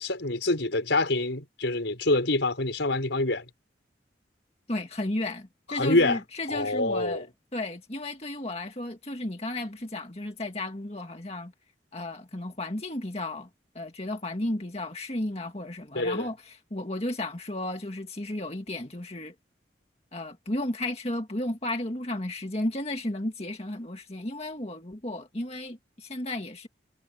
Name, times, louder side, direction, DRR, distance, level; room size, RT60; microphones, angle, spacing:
voice 1, 0.0-3.4 5.7-6.2 6.5-7.2 15.9-16.3, left 2 dB, 80° left, 5.0 m, -26 dB
voice 2, 4.7-7.3 7.5-11.5 11.9-13.5 13.8-19.3 20.1-26.7, left 1 dB, 35° left, 1.9 m, -33 dB
head